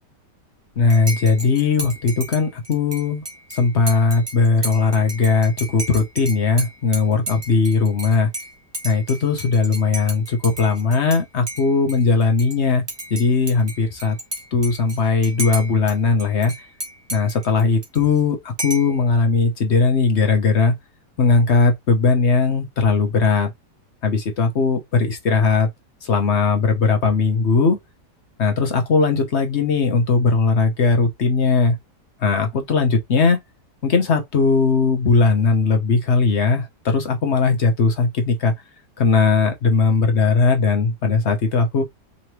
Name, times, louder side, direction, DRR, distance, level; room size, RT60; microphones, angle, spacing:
voice 1, 0.8-3.2 3.5-8.3 8.8-12.8 13.1-14.2 14.5-16.5 17.1-20.7 21.2-23.5 24.0-25.7 26.0-27.8 28.4-31.8 32.2-33.4 33.8-38.5 39.0-41.8, left 4 dB, 50° left, 1.0 m, -18 dB
Dishes pots and pans / Cutlery silverware / Chink clink, 0.9-11.2 11.5-12.6 12.9-15.9 16.2-18.2 18.6-19.0, right 2 dB, 20° right, 0.8 m, -33 dB
3.9 x 3.1 x 3.0 m
omnidirectional pair, 1.8 m